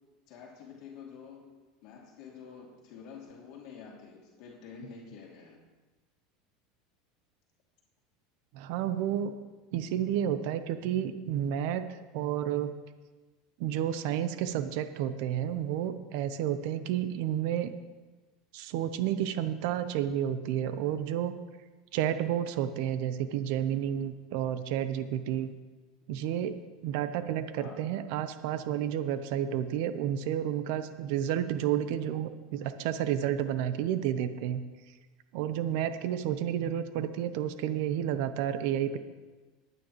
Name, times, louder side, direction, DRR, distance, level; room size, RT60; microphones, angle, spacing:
voice 1, 0.3-1.5 1.8-5.6 27.6-27.8, left 6 dB, 60° left, -2 dB, 2.7 m, -48 dB
voice 2, 8.5-9.3 9.7-12.7 13.6-17.7 18.5-21.3 21.9-25.5 26.1-26.6 26.8-34.6 35.3-39.0, right 10 dB, 70° right, 10 dB, 0.7 m, -31 dB
22.0 x 9.4 x 3.1 m, 1.3 s
supercardioid pair, 120°, 0 cm